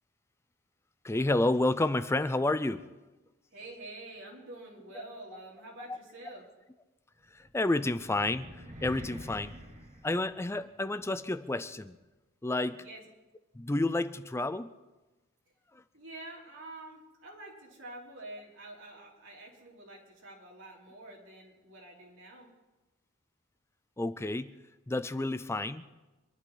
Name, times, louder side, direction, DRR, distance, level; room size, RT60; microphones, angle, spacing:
voice 1, 1.0-2.9 5.9-6.0 7.3-9.5 10.0-12.0 12.4-12.8 13.5-14.7 15.7-15.8 24.0-24.5 24.9-25.9, left 2 dB, 15° left, 13 dB, 0.4 m, -30 dB
voice 2, 3.5-6.5 12.7-13.0 15.9-22.5, right 2 dB, 70° right, -3 dB, 3.7 m, -47 dB
sound 1, 7.4-10.9, equal, 35° right, 1.7 m, -47 dB
25.5 x 11.5 x 3.9 m, 1.1 s
head